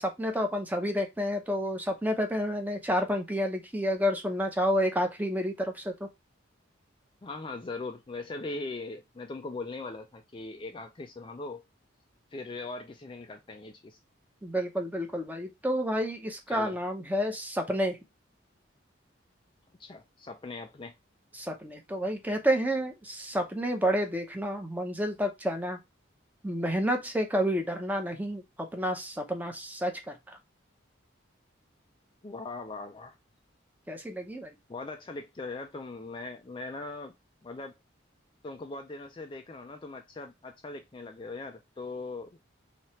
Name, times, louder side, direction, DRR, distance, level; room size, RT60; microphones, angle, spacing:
voice 1, 0.0-6.1 14.4-18.0 21.3-25.8 26.4-30.4 33.9-34.5, equal, 10° right, 0.7 m, -30 dB
voice 2, 7.2-11.6 12.3-14.0 16.5-16.7 19.8-20.9 32.2-33.2 34.7-37.1 37.4-37.7 38.4-42.5, left 3 dB, 25° left, 0.3 m, -40 dB
3.2 x 2.8 x 4.2 m
head